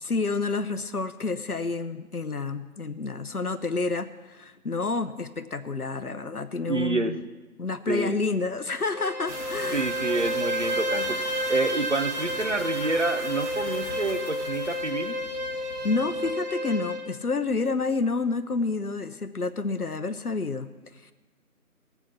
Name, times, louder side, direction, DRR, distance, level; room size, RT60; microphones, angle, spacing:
voice 1, 0.0-7.2 7.6-9.9 15.8-20.7, left 3 dB, 75° left, 12 dB, 0.8 m, -29 dB
voice 2, 6.6-7.2 7.9-8.2 9.7-11.2 11.5-15.2, right 2 dB, 50° right, 10 dB, 0.8 m, -28 dB
Bowed string instrument, 8.8-17.1, equal, 80° right, 1.9 m, -31 dB
sound 1, 9.3-16.4, left 1 dB, 45° left, 2.0 m, -41 dB
19.0 x 8.0 x 5.9 m, 1.2 s
figure-of-eight pair, 170°, 45 cm